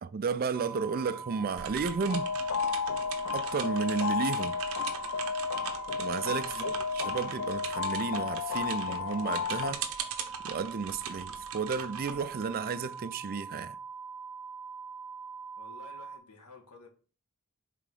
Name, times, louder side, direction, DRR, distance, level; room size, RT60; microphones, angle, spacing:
voice 1, 0.0-2.3 3.3-4.6 6.0-9.8 10.4-13.8, right 5 dB, 40° right, 0.4 m, -33 dB
sound 1, 0.5-16.2, right 5 dB, 5° left, 0.8 m, -43 dB
sound 2, 1.6-13.1, right 7 dB, 65° right, 0.9 m, -41 dB
sound 3, 2.1-9.7, left 6 dB, 65° left, 0.4 m, -33 dB
voice 2, 6.5-6.8 15.6-16.9, left 3 dB, 85° left, 1.5 m, -52 dB
5.0 x 3.8 x 5.2 m
head